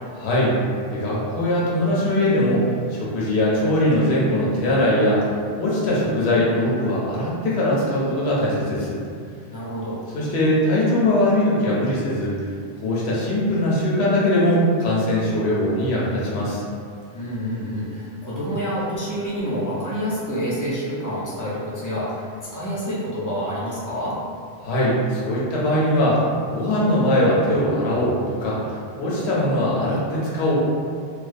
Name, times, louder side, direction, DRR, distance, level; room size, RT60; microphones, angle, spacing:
voice 1, 0.2-0.5 0.9-2.6 2.9-5.2 5.6-9.0 10.1-12.3 12.8-16.6 24.6-26.2 26.5-30.6, left 1 dB, 75° left, -6 dB, 0.9 m, -21 dB
voice 2, 9.5-10.0 17.1-22.3 22.5-24.1, equal, 30° left, -9 dB, 0.4 m, -28 dB
2.2 x 2.2 x 2.5 m, 2.2 s
omnidirectional pair, 1.1 m